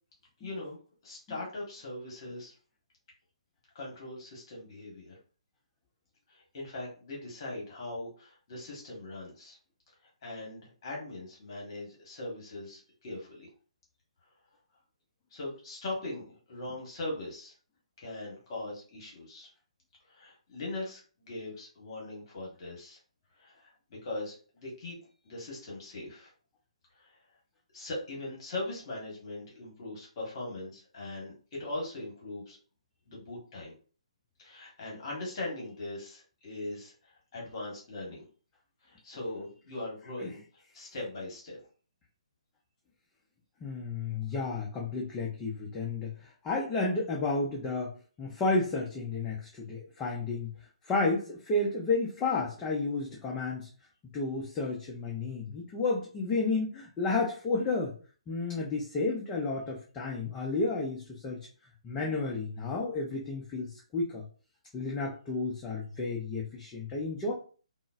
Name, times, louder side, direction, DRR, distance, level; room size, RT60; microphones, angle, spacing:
voice 1, 0.4-0.8 1.0-2.6 3.7-5.2 6.3-9.6 10.2-13.5 15.3-17.5 18.0-19.5 20.1-21.0 21.3-23.0 23.4-25.0 25.2-26.3 27.0-27.2 27.7-32.6 33.1-33.7 34.4-38.3 38.8-40.4 40.7-41.6, left 2 dB, 45° left, -2 dB, 1.2 m, -40 dB
voice 2, 43.6-46.1 46.4-47.9 48.2-50.5 50.9-53.7 54.1-57.9 58.3-61.5 61.8-64.2 64.7-67.3, left 3 dB, 15° left, -3 dB, 0.5 m, -31 dB
3.7 x 2.0 x 2.4 m, 0.38 s
figure-of-eight pair, 140°, 4 cm